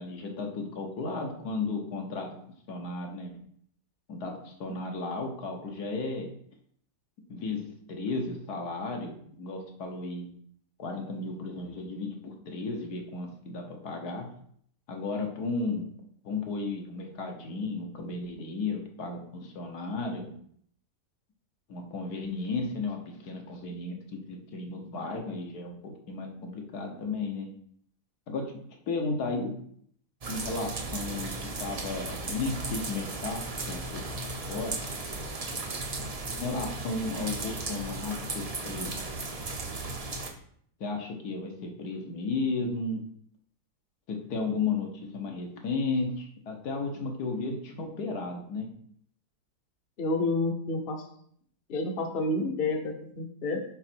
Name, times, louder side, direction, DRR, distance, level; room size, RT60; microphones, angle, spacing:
voice 1, 0.0-2.3 2.7-3.3 4.1-6.3 7.3-10.3 10.8-14.3 14.9-15.9 16.2-20.3 21.7-27.5 28.3-28.5 28.9-29.5 30.3-34.0 34.5-34.8 36.3-38.9 40.8-43.0 44.1-48.7, left 3 dB, 70° left, 2 dB, 1.7 m, -34 dB
sound 1, 30.2-40.3, right 3 dB, 35° right, 0.6 m, -36 dB
voice 2, 50.0-51.0 51.7-53.6, left 2 dB, 40° left, 3 dB, 1.0 m, -29 dB
6.5 x 5.0 x 4.5 m, 0.64 s
omnidirectional pair, 1.7 m